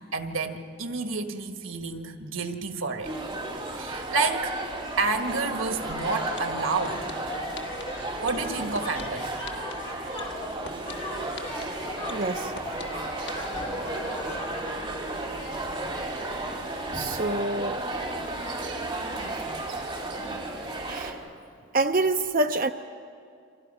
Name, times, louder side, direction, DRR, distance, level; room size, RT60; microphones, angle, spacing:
voice 1, 0.1-3.1 3.8-4.5 5.0-7.1 8.2-9.3, right 3 dB, 85° right, 6 dB, 1.6 m, -29 dB
sound 1, 3.0-21.1, right 2 dB, 25° right, 2.5 m, -33 dB
sound 2, 5.8-14.7, left 2 dB, 25° left, 4.5 m, -39 dB
sound 3, 5.9-6.0 6.4-7.1 7.6-7.8 8.3-9.0 9.5-9.7 10.2-10.9 11.4-11.6 12.1-12.8 13.3-13.4, left 5 dB, 60° left, 1.6 m, -39 dB
voice 2, 12.1-12.5 16.9-17.8 20.9-21.2 21.7-22.7, right 2 dB, 45° right, 6 dB, 0.6 m, -26 dB
29.5 x 24.5 x 5.5 m, 2.3 s
head